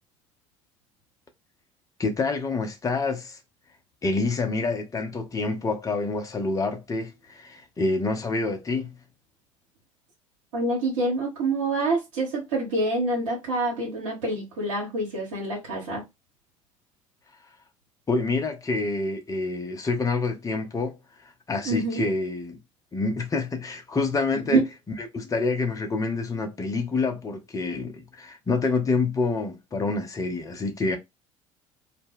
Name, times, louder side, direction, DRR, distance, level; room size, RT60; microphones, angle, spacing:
voice 1, 2.0-3.4 4.0-8.9 18.1-21.0 21.5-22.6 22.9-24.6 25.0-31.0, left 3 dB, 20° left, 0.6 m, -27 dB
voice 2, 10.5-16.0 21.7-22.1 24.3-24.6, right 2 dB, 70° right, 0.9 m, -26 dB
2.1 x 2.0 x 3.5 m
figure-of-eight pair, 60°, 17 cm